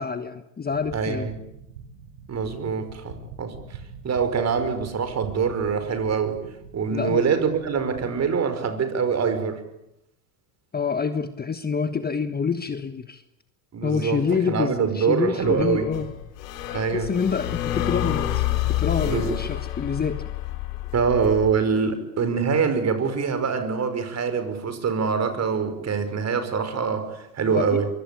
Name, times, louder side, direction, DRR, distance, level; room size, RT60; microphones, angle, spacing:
voice 1, 0.0-1.3 6.9-7.2 10.7-13.2 13.8-16.1 16.7-20.3 27.5-27.8, left 6 dB, 20° left, 10 dB, 1.4 m, -27 dB
sound 1, 0.7-8.3, right 6 dB, 80° right, 5.1 m, -44 dB
voice 2, 0.9-1.4 2.3-3.8 4.0-6.4 6.7-9.6 13.7-15.9 16.7-17.1 19.0-19.3 20.9-27.9, right 6 dB, 30° right, 10 dB, 5.6 m, -24 dB
sound 2, 15.4-21.5, left 13 dB, 75° left, 4.3 m, -28 dB
24.5 x 24.5 x 8.7 m, 0.83 s
hypercardioid pair, 90°, 48 cm